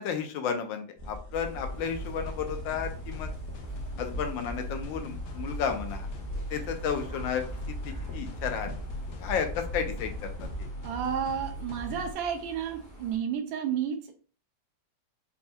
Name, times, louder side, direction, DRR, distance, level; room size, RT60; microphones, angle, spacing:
voice 1, 0.0-3.3 4.0-6.1 6.5-7.4 7.8-8.7 9.2-10.3 10.6-10.7, left 7 dB, 85° left, 6 dB, 1.3 m, -32 dB
sound 1, 1.0-10.7, left 1 dB, 50° left, 0.7 m, -41 dB
sound 2, 1.3-13.2, right 1 dB, 20° left, 0.5 m, -50 dB
sound 3, 1.8-12.1, right 1 dB, 70° left, 0.9 m, -40 dB
voice 2, 10.8-14.1, right 8 dB, 85° right, 5 dB, 1.4 m, -31 dB
4.3 x 2.7 x 2.2 m, 0.39 s
omnidirectional pair, 2.0 m